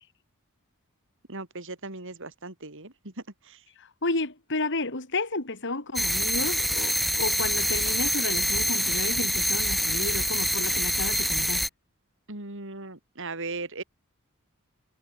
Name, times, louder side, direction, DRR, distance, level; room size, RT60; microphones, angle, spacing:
voice 1, 1.3-3.1 3.5-3.6 12.3-13.8, right 3 dB, 60° right, 4.5 m, -38 dB
voice 2, 3.8-11.6, left 2 dB, 55° left, 4.0 m, -32 dB
sound 1, 6.0-11.7, equal, ahead, 0.6 m, -26 dB
head